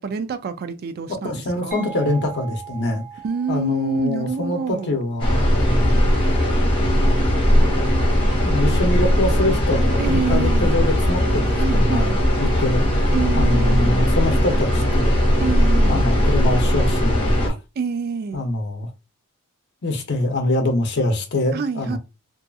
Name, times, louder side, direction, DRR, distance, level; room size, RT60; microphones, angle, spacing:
voice 1, 0.0-1.8 3.2-4.9 10.0-10.7 11.6-12.2 13.1-14.0 15.4-16.1 17.8-18.4 21.5-22.0, right 5 dB, 45° right, 0.3 m, -27 dB
voice 2, 1.1-3.0 3.5-6.1 7.2-8.0 8.4-12.1 12.4-12.8 13.3-15.2 15.8-17.6 18.3-18.9 19.8-22.0, left 2 dB, 50° left, 0.6 m, -24 dB
sound 1, 1.7-7.2, right 7 dB, 10° right, 0.9 m, -41 dB
sound 2, 5.2-17.5, equal, 25° left, 1.0 m, -18 dB
2.6 x 2.5 x 2.3 m
head